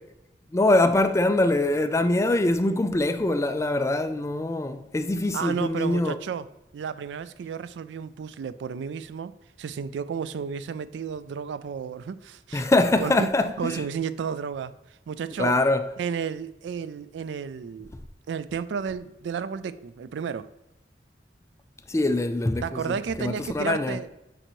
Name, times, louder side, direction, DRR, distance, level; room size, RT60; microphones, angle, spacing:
voice 1, 0.5-6.2 12.5-13.8 15.4-15.9 21.9-24.0, left 2 dB, 15° left, 0.3 m, -23 dB
voice 2, 5.3-6.5 6.7-9.3 9.6-12.7 13.0-13.3 13.6-14.7 15.1-15.6 16.0-17.9 18.3-20.5 22.6-24.1, right 6 dB, 75° right, 0.3 m, -32 dB
8.8 x 3.9 x 3.0 m
head